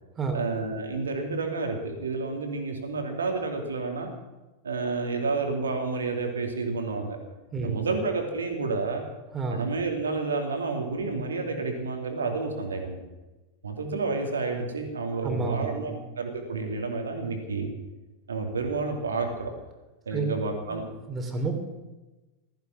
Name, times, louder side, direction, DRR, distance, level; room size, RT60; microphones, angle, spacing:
voice 1, 0.3-4.1 4.6-7.2 7.6-9.0 9.5-13.0 13.6-17.7 18.3-19.5 20.1-20.9, right 3 dB, 70° right, 4 dB, 2.6 m, -30 dB
voice 2, 7.5-7.9 9.3-9.7 15.2-16.0 20.1-20.2 20.7-21.5, right 4 dB, 20° right, 4 dB, 3.4 m, -31 dB
15.5 x 14.0 x 5.9 m, 1.1 s
figure-of-eight pair, 90°, 0 cm